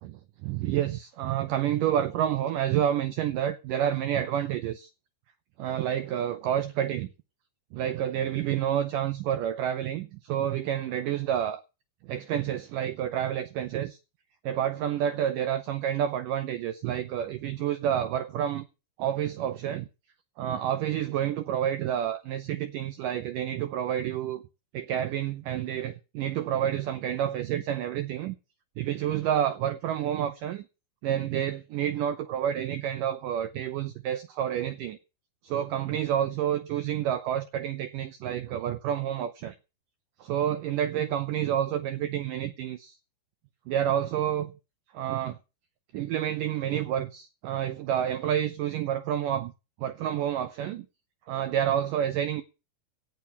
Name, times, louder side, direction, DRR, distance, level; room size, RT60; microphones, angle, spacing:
voice 1, 0.0-4.9 5.6-7.1 7.7-11.6 12.0-14.0 14.4-18.7 19.0-19.9 20.4-24.4 24.7-28.4 28.8-30.6 31.0-35.0 35.4-39.6 40.2-43.0 43.7-44.5 44.9-45.4 45.9-49.5 49.8-50.9 51.3-52.4, right 10 dB, 85° right, 1.8 m, -29 dB
17.0 x 9.4 x 5.6 m
omnidirectional pair, 4.8 m